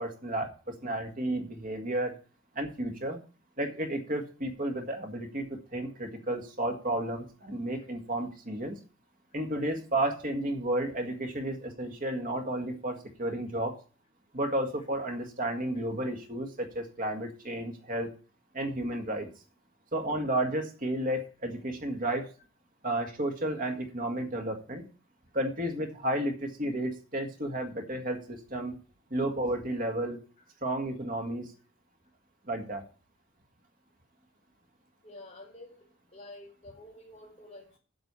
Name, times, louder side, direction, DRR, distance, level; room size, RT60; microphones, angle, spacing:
voice 1, 0.0-2.1 2.6-3.2 3.6-8.8 9.3-13.7 14.3-18.1 18.5-19.3 19.9-22.3 22.8-24.8 25.3-28.8 29.1-30.2 30.6-31.5 32.5-32.8, right 1 dB, 40° right, 5 dB, 1.9 m, -32 dB
voice 2, 35.0-35.9 36.1-37.8, left 1 dB, 35° left, 1 dB, 3.8 m, -49 dB
8.0 x 6.6 x 8.2 m, 0.37 s
head